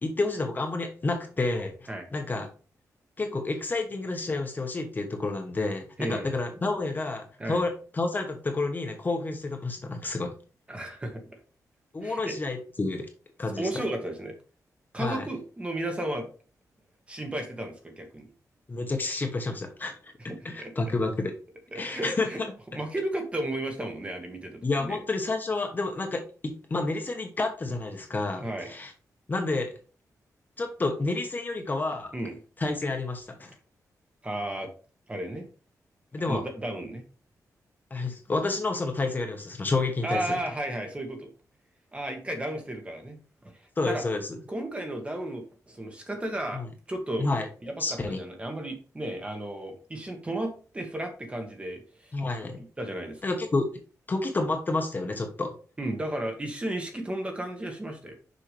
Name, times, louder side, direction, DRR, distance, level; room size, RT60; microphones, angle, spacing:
voice 1, 0.0-2.5 3.2-10.3 11.9-13.1 13.4-13.8 15.0-15.3 18.7-20.1 20.4-21.3 21.7-22.5 24.6-28.9 29.3-29.7 30.6-32.1 32.6-33.5 36.1-36.4 37.9-40.4 43.8-44.4 46.5-46.7 47.2-47.5 47.8-48.2 52.1-52.6 53.2-53.7 54.1-55.5, left 3 dB, 30° left, 4 dB, 1.2 m, -30 dB
voice 2, 6.0-6.3 7.4-7.6 10.7-11.2 12.0-12.4 13.6-14.3 14.9-16.3 17.1-18.2 20.3-20.7 21.7-22.4 22.7-25.0 28.4-28.7 32.1-32.4 34.2-34.7 35.1-35.5 36.3-37.0 40.0-41.3 41.9-43.5 43.9-44.0 44.5-47.3 47.6-52.1 52.6-53.2 55.8-58.2, right 1 dB, 20° right, 4 dB, 1.6 m, -34 dB
6.4 x 5.8 x 3.3 m, 0.37 s
wide cardioid pair, 130°, 6 cm